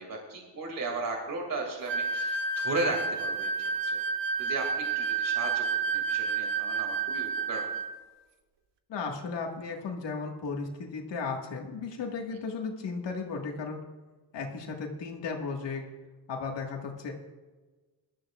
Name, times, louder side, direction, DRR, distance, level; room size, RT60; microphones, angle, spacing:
voice 1, 0.0-4.0 4.4-5.7 5.9-7.6 12.3-12.4, right 3 dB, 50° right, 1 dB, 2.5 m, -36 dB
sound 1, 1.9-8.0, right 5 dB, 80° right, 1.3 m, -30 dB
voice 2, 8.9-13.8 14.3-15.8 16.3-17.1, left 4 dB, 85° left, 1 dB, 1.8 m, -35 dB
20.5 x 12.5 x 2.4 m, 1.3 s
wide cardioid pair, 135°, 42 cm